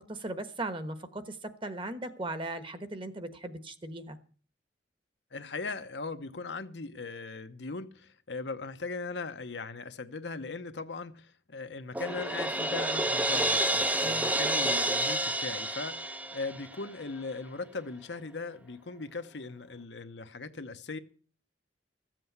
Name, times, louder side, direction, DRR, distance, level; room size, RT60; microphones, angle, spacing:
voice 1, 0.0-1.4 1.6-4.2 14.0-14.3, right 2 dB, 30° right, 1.2 m, -38 dB
voice 2, 5.3-21.0, left 3 dB, 80° left, 0.9 m, -39 dB
Crash cymbal, 12.0-16.9, right 1 dB, 10° right, 0.5 m, -29 dB
14.0 x 7.7 x 7.9 m
head